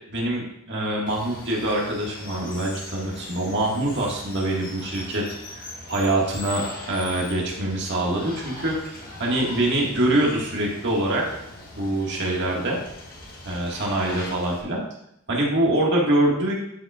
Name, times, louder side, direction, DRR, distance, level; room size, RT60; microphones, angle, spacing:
voice 1, 0.1-5.3 5.6-11.3 11.7-12.8 13.5-14.8 15.3-16.5, right 1 dB, 55° right, -2 dB, 1.8 m, -24 dB
Water, 1.1-14.6, left 2 dB, 45° left, 1.5 m, -40 dB
12.0 x 5.6 x 2.4 m, 0.76 s
head